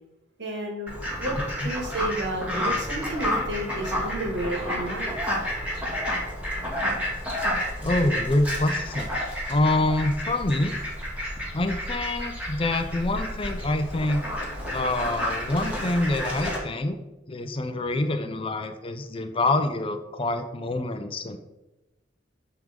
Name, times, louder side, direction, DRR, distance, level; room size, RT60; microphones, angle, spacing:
voice 1, 0.4-0.9 1.2-5.2, right 1 dB, 75° right, 1 dB, 2.0 m, -31 dB
Fowl, 0.9-16.6, equal, 10° right, 2.2 m, -30 dB
voice 2, 7.8-9.1 9.5-10.8 11.5-14.2 14.7-17.0 17.3-21.4, left 2 dB, 30° left, 8 dB, 0.6 m, -26 dB
9.1 x 3.7 x 5.2 m, 1.0 s
head